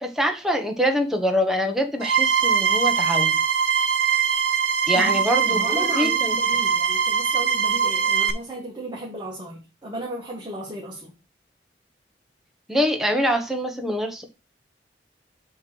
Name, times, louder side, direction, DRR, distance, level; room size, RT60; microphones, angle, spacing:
voice 1, 0.0-3.4 4.9-6.3 12.7-14.2, equal, ahead, 1.1 m, -24 dB
sound 1, 2.0-8.3, right 7 dB, 80° right, 0.9 m, -22 dB
voice 2, 4.9-11.1, right 1 dB, 25° right, 1.7 m, -35 dB
7.4 x 3.2 x 6.1 m
head